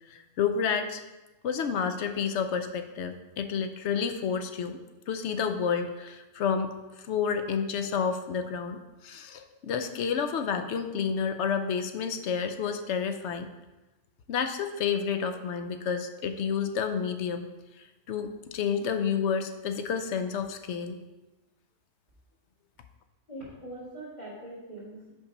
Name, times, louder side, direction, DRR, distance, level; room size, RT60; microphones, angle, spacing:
voice 1, 0.1-1.0 1.4-4.8 5.1-13.5 14.3-17.5 17.8-21.0, left 6 dB, 70° left, 7 dB, 0.8 m, -30 dB
voice 2, 23.3-25.1, right 1 dB, 40° left, -12 dB, 2.1 m, -42 dB
5.7 x 4.5 x 5.1 m, 1.1 s
omnidirectional pair, 1.3 m